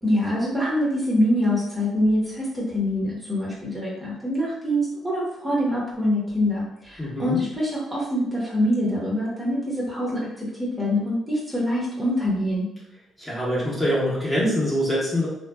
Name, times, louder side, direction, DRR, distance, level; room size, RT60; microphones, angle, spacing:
voice 1, 0.0-12.7, left 1 dB, 15° right, -6 dB, 0.9 m, -24 dB
voice 2, 7.0-7.4 13.2-15.3, equal, 10° left, -7 dB, 1.0 m, -24 dB
2.5 x 2.2 x 2.2 m, 0.83 s
cardioid pair, 90°, 0 cm